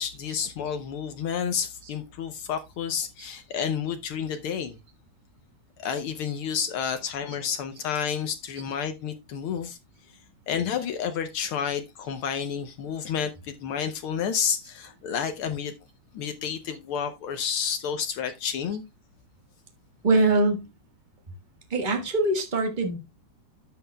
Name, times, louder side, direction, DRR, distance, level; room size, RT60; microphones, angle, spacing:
voice 1, 0.0-4.8 5.8-9.8 10.5-15.7 16.1-18.8, left 7 dB, 85° left, 1.1 m, -30 dB
voice 2, 20.0-20.7 21.7-23.0, right 2 dB, 35° right, 0.7 m, -23 dB
12.5 x 7.7 x 2.2 m
omnidirectional pair, 3.4 m